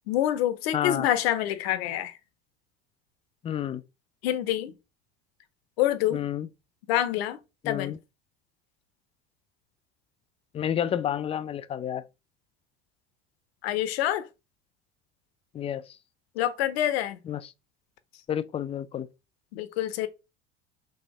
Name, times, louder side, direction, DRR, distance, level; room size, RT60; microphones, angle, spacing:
voice 1, 0.1-2.1 4.2-4.7 5.8-6.3 6.9-7.4 7.7-8.0 13.6-14.3 16.4-17.2 19.5-20.1, left 12 dB, 70° left, 0.7 m, -26 dB
voice 2, 0.7-1.1 3.4-3.8 6.1-6.5 7.6-8.0 10.5-12.0 15.5-16.0 17.3-17.5 18.3-19.1, left 10 dB, 20° left, 0.3 m, -30 dB
4.2 x 2.7 x 3.6 m
figure-of-eight pair, 65°, 32 cm